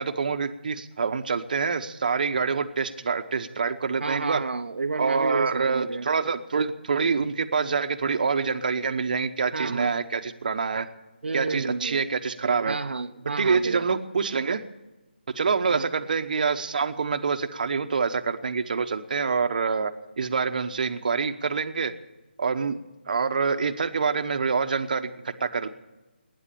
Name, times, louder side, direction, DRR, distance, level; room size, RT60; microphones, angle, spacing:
voice 1, 0.0-4.4 5.0-10.9 11.3-12.8 13.4-14.6 15.3-21.9 22.4-22.8 23.1-25.7, right 5 dB, 50° right, 9 dB, 1.0 m, -26 dB
voice 2, 4.0-6.1 9.5-9.9 11.2-12.0 12.6-13.8 15.7-15.9, right 4 dB, 75° right, 6 dB, 0.7 m, -30 dB
19.5 x 9.6 x 6.9 m, 1.1 s
figure-of-eight pair, 165°, 6 cm